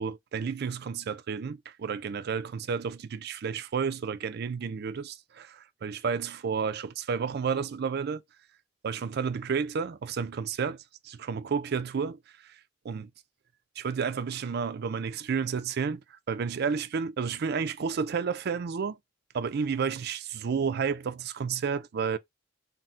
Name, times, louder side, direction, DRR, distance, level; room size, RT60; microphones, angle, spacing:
voice 1, 0.0-8.2 8.8-12.6 12.9-13.0 13.8-16.0 16.3-19.0 19.3-22.2, right 6 dB, 55° right, 0.4 m, -31 dB
3.9 x 2.1 x 4.3 m
head